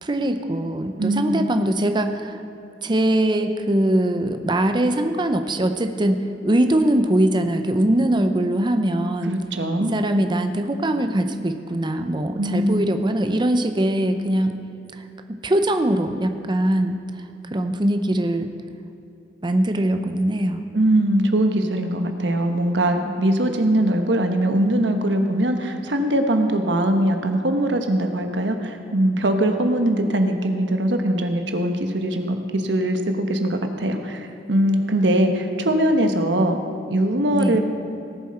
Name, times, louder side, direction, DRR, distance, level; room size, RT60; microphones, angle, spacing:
voice 1, 0.0-2.4 2.8-9.4 9.8-14.6 15.3-17.0 17.5-18.5 19.4-20.6 23.0-23.1 37.3-37.6, right 1 dB, 25° right, 7 dB, 0.6 m, -22 dB
voice 2, 1.0-1.4 9.2-9.9 12.4-12.8 20.7-36.6 36.9-37.6, right 1 dB, 80° right, 6 dB, 1.1 m, -21 dB
18.5 x 7.5 x 4.3 m, 2.8 s
head